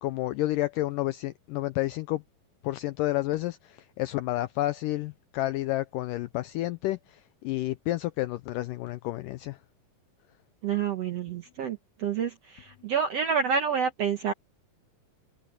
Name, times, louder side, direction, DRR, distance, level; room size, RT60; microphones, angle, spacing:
voice 1, 0.0-2.2 2.6-9.6, left 16 dB, 80° left, 1.9 m, -30 dB
voice 2, 10.6-14.3, right 6 dB, 65° right, 1.6 m, -28 dB
omnidirectional pair, 4.4 m